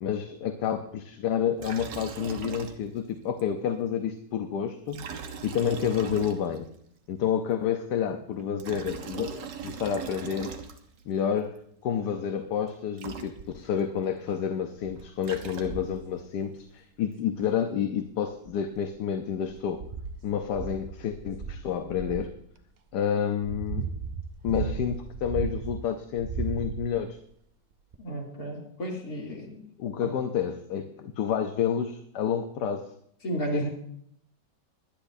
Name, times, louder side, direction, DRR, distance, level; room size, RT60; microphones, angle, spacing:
voice 1, 0.0-5.0 5.4-6.7 7.1-10.5 11.1-11.6 11.8-19.8 20.2-22.3 22.9-23.9 24.4-27.2 29.8-32.9 33.5-33.7, left 8 dB, 75° left, 7 dB, 1.4 m, -29 dB
Liquid, 1.6-3.1 3.4-3.5 4.9-6.8 8.4-11.1 12.7-12.8 13.0-13.8 15.0-16.1, right 7 dB, 85° right, 1.7 m, -40 dB
sound 1, 13.4-13.7 14.3-14.4 14.8-15.1 15.5-16.0 17.4-17.5 18.3-19.0 19.5-22.3 23.1-25.8 26.2-27.1 27.9-28.0, right 5 dB, 70° right, 0.4 m, -36 dB
voice 2, 28.0-29.6 30.0-30.1 33.2-33.7, right 1 dB, 55° left, -2 dB, 3.3 m, -33 dB
22.5 x 10.5 x 2.6 m, 0.69 s
omnidirectional pair, 1.9 m